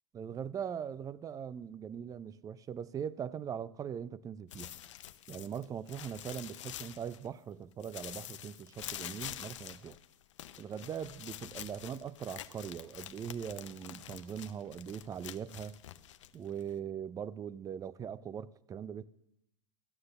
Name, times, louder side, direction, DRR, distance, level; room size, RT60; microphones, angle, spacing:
voice 1, 0.1-4.7 5.3-10.0 10.6-15.8 16.3-19.1, right 8 dB, 20° right, 0.5 m, -41 dB
sound 1, 4.5-7.5 7.8-16.8, left 12 dB, 70° left, 0.7 m, -47 dB
13.5 x 9.7 x 6.5 m
hypercardioid pair, 100°, 16 cm